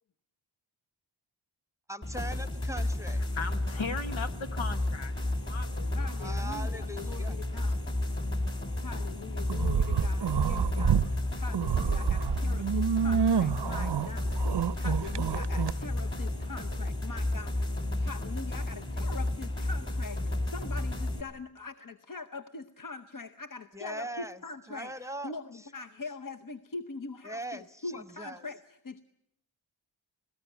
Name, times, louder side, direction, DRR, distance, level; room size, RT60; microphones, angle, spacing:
voice 1, 1.9-3.2 6.2-7.5 23.7-24.4 24.7-25.7 27.2-28.5, right 1 dB, 5° right, 13 dB, 1.0 m, -41 dB
sound 1, 2.0-21.2, left 1 dB, 25° left, 2.9 m, -32 dB
voice 2, 3.3-5.1 5.5-6.4, left 4 dB, 80° left, 7 dB, 1.4 m, -38 dB
voice 3, 5.9-7.9 8.7-11.0 11.3-17.7 18.0-29.0, left 4 dB, 45° left, 9 dB, 0.9 m, -43 dB
sound 2, 9.5-11.1 11.4-15.7, right 8 dB, 60° right, 0.7 m, -28 dB
19.0 x 17.0 x 9.1 m, 0.77 s
wide cardioid pair, 55°, 47 cm